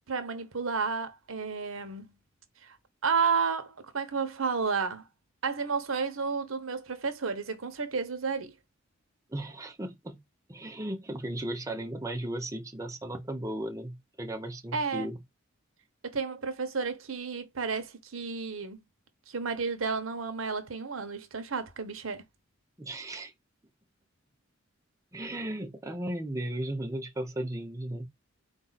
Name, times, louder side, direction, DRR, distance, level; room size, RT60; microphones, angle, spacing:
voice 1, 0.1-2.1 2.6-2.7 3.0-5.0 5.4-8.5 14.7-15.1 16.0-18.8 19.3-22.2, right 5 dB, 80° right, 0.9 m, -31 dB
voice 2, 9.3-10.2 10.5-15.2 22.8-23.3 25.1-28.1, right 1 dB, 15° right, 0.7 m, -36 dB
4.3 x 2.6 x 4.0 m
head